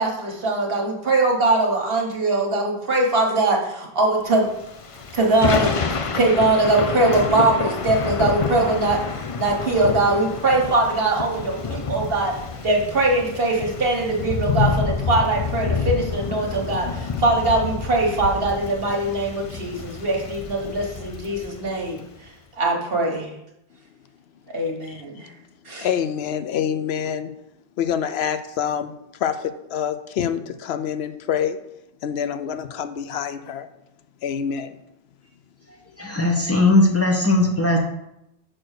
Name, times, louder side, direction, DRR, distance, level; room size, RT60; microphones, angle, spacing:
voice 1, 0.0-4.5 5.1-5.7 6.1-9.0 9.4-12.3 12.6-22.0 22.6-23.3 24.5-25.3 25.6-25.9, right 2 dB, 65° right, 0 dB, 1.4 m, -21 dB
Thunder / Rain, 4.5-22.0, left 5 dB, 40° left, 0.5 m, -28 dB
voice 2, 25.8-27.3 27.8-28.9 29.2-31.6 32.0-33.7 34.2-34.8, left 8 dB, 90° left, 11 dB, 0.8 m, -26 dB
voice 3, 36.0-37.8, left 2 dB, 15° left, 0 dB, 1.3 m, -18 dB
6.0 x 4.4 x 6.4 m, 0.83 s
omnidirectional pair, 1.0 m